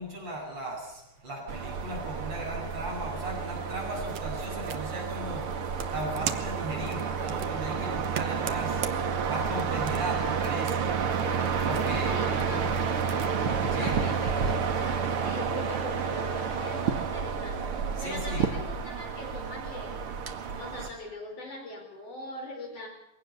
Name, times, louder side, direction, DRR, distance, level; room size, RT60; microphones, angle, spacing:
voice 1, 0.0-8.9 9.3-10.9 11.6-12.7 13.7-14.0 18.0-18.4 20.8-20.9, right 1 dB, 35° right, -3 dB, 8.1 m, -37 dB
sound 1, 1.5-20.9, right 6 dB, 55° right, 2.2 m, -30 dB
sound 2, 3.7-13.3, right 9 dB, 70° right, 2.5 m, -42 dB
voice 2, 8.9-9.3 12.1-12.6 13.5-20.0 20.5-22.9, left 2 dB, 55° left, 1 dB, 5.7 m, -41 dB
sound 3, 11.1-16.8, left 1 dB, 25° left, 7.3 m, -42 dB
22.0 x 17.5 x 7.0 m, 0.89 s
omnidirectional pair, 3.3 m